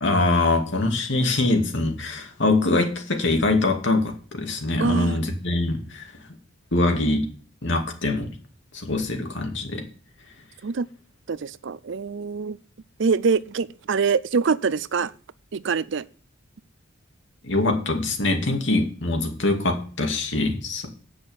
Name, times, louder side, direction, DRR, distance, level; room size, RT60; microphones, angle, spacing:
voice 1, 0.0-6.1 6.7-7.3 7.6-8.3 8.7-9.8 17.4-20.9, left 2 dB, 60° left, 2.3 m, -23 dB
voice 2, 4.8-5.2 8.9-9.0 10.6-10.9 11.3-12.6 13.0-15.1 15.5-16.0, right 5 dB, 60° right, 0.5 m, -24 dB
8.5 x 6.4 x 7.1 m
head